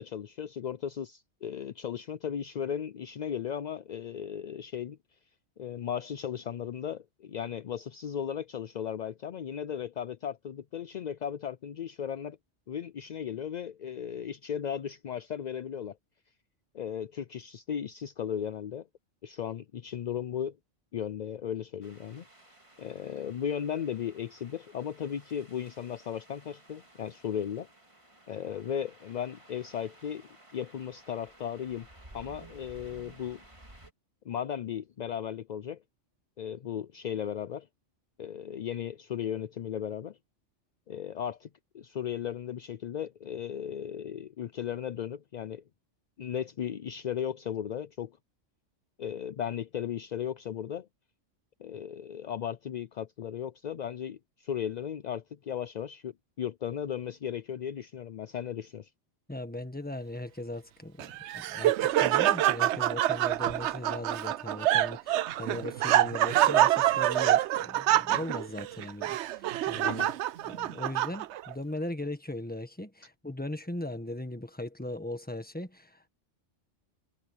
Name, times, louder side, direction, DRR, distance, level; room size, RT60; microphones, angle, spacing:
voice 1, 0.0-5.0 5.6-12.4 12.7-16.0 16.7-18.9 19.2-20.6 20.9-22.3 22.8-27.7 28.3-31.9 32.1-33.4 34.3-35.8 36.4-37.7 38.2-40.2 40.9-41.5 41.7-45.6 46.2-48.1 49.0-50.9 51.6-58.9 69.8-70.1, left 9 dB, 55° left, 0.5 m, -36 dB
sound 1, 21.8-33.9, right 1 dB, 25° right, 2.7 m, -55 dB
voice 2, 59.3-70.1 70.4-76.1, left 1 dB, 5° left, 1.5 m, -39 dB
Laughter, 61.0-71.5, right 13 dB, 70° right, 0.8 m, -26 dB
omnidirectional pair, 1.3 m